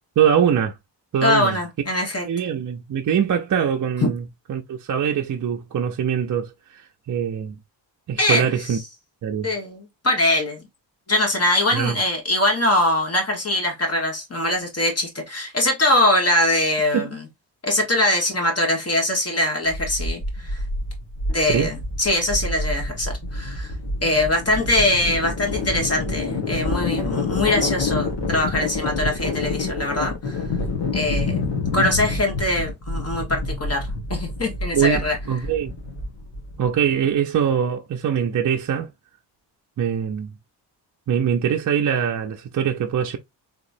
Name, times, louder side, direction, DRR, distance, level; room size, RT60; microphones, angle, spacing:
voice 1, 0.2-0.8 1.1-1.6 2.3-4.2 4.5-6.8 7.1-7.6 8.1-8.8 9.2-9.5 11.7-12.0 16.9-17.1 21.4-21.7 34.7-35.7 36.6-38.9 39.8-40.3 41.1-43.2, right 8 dB, 45° right, 0.5 m, -23 dB
voice 2, 1.2-2.3 8.2-8.8 9.4-10.6 11.1-17.2 17.6-20.6 21.3-23.7 24.0-30.4 30.9-31.5 31.7-35.2, left 1 dB, 35° left, 1.4 m, -22 dB
sound 1, 19.7-36.7, left 3 dB, 70° left, 1.6 m, -27 dB
3.6 x 2.9 x 2.5 m
cardioid pair, 110°, 44 cm